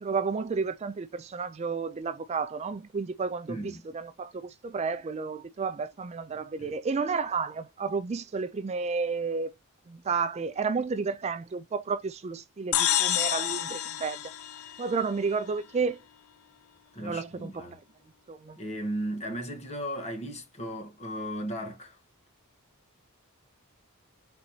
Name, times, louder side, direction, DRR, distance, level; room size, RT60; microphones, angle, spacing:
voice 1, 0.0-9.5 9.9-14.2 14.8-16.0 17.0-17.6 18.3-18.6, right 5 dB, 30° right, 0.3 m, -31 dB
voice 2, 3.5-3.8 6.3-6.7 16.9-17.8 18.6-22.0, equal, 30° left, 1.3 m, -36 dB
sound 1, 12.7-15.3, left 12 dB, 70° left, 0.5 m, -28 dB
4.5 x 3.9 x 2.8 m
head